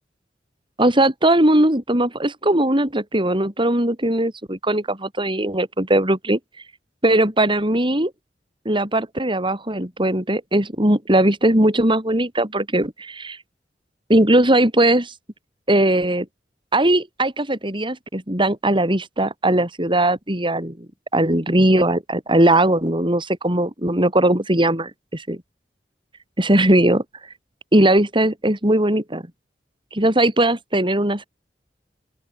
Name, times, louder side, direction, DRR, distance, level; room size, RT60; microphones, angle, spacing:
voice 1, 0.8-6.4 7.0-8.1 8.6-13.4 14.1-15.1 15.7-16.3 16.7-20.9 21.1-25.4 26.4-27.0 27.7-29.2 29.9-31.3, right 1 dB, 30° right, 6.2 m, -19 dB
open air
head